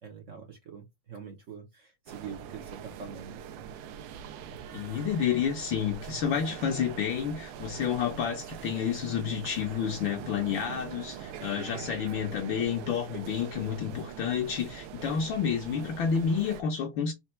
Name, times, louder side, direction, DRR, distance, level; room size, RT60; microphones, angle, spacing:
voice 1, 0.0-3.7 4.4-4.5 4.9-5.0 6.1-6.2 11.5-11.9, right 6 dB, 60° right, 0.8 m, -45 dB
sound 1, 2.1-16.6, right 8 dB, 80° right, 1.4 m, -43 dB
voice 2, 4.7-17.1, left 7 dB, 70° left, 1.5 m, -30 dB
4.4 x 2.3 x 4.2 m
omnidirectional pair, 2.4 m